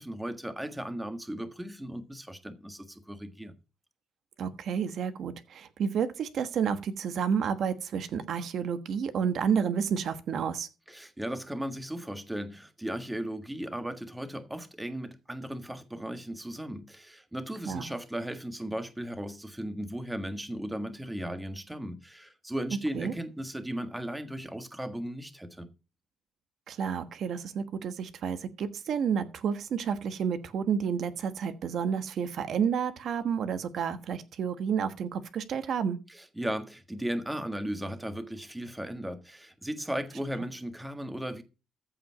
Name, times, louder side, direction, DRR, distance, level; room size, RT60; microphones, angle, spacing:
voice 1, 0.0-3.5 10.9-25.7 36.1-41.4, right 1 dB, 10° right, 1.5 m, -36 dB
voice 2, 4.4-10.7 17.6-17.9 22.9-23.1 26.7-36.0, right 7 dB, 65° right, 1.3 m, -30 dB
14.5 x 5.1 x 5.7 m
cardioid pair, 90°, 0 cm